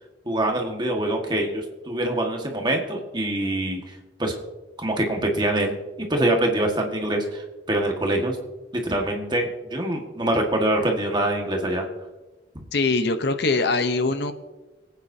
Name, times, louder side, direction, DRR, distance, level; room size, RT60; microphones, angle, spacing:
voice 1, 0.3-3.8 4.2-4.3 4.8-8.4 8.7-11.9, right 1 dB, 25° right, 2 dB, 1.6 m, -24 dB
voice 2, 12.7-14.3, left 3 dB, 60° left, 9 dB, 0.8 m, -22 dB
25.5 x 9.2 x 2.7 m, 1.1 s
head